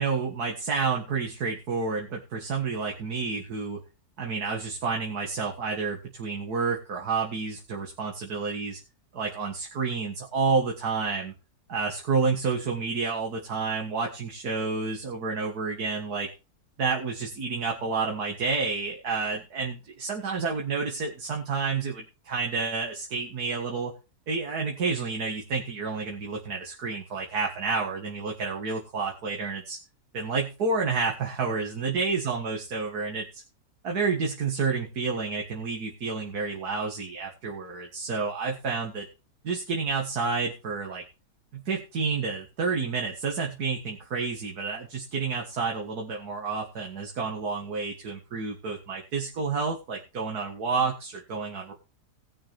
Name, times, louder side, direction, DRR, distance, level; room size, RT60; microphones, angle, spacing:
voice 1, 0.0-3.8 4.2-8.8 9.1-11.3 11.7-16.3 16.8-23.9 24.3-29.8 30.1-33.4 33.8-39.1 39.4-41.0 41.5-51.7, right 4 dB, 75° right, 0 dB, 2.2 m, -30 dB
19.5 x 6.7 x 3.4 m, 0.32 s
omnidirectional pair, 1.7 m